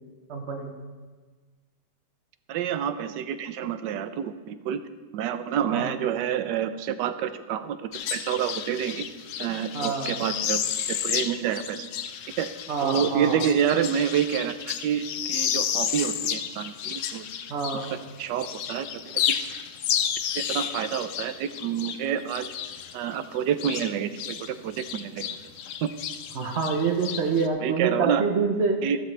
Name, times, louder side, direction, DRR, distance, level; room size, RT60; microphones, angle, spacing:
voice 1, 0.3-0.7 5.7-5.9 9.7-10.1 12.7-13.4 17.5-17.9 26.4-28.8, right 4 dB, 50° right, 2 dB, 1.0 m, -26 dB
voice 2, 2.5-4.8 5.1-9.0 9.4-10.6 11.0-11.9 12.4-12.5 12.8-17.3 18.2-19.0 20.3-22.5 22.9-25.3 25.8-25.9 27.6-28.2 28.8-29.0, right 9 dB, 85° right, 11 dB, 1.3 m, -28 dB
sound 1, 7.9-18.1 18.4-24.5 24.7-27.5, left 9 dB, 65° left, 0.7 m, -31 dB
14.0 x 12.5 x 3.3 m, 1.4 s
omnidirectional pair, 1.8 m